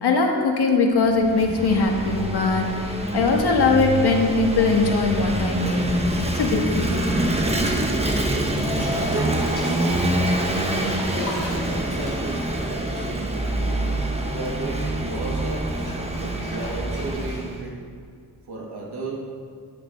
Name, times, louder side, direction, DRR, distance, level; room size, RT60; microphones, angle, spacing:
voice 1, 0.0-5.9 6.3-7.2, left 3 dB, 80° left, 1 dB, 1.7 m, -21 dB
Vehicle / Engine, 1.0-17.6, right 1 dB, 15° right, 1.1 m, -25 dB
Bathtub (filling or washing), 8.1-13.8 14.1-17.7, left 2 dB, 50° left, 3.6 m, -39 dB
voice 2, 8.9-9.9 10.7-13.6 13.9-15.8 16.1-17.8 18.5-19.4, right 2 dB, 80° right, -2 dB, 2.6 m, -33 dB
15.5 x 8.7 x 4.5 m, 2.2 s
wide cardioid pair, 170°, 39 cm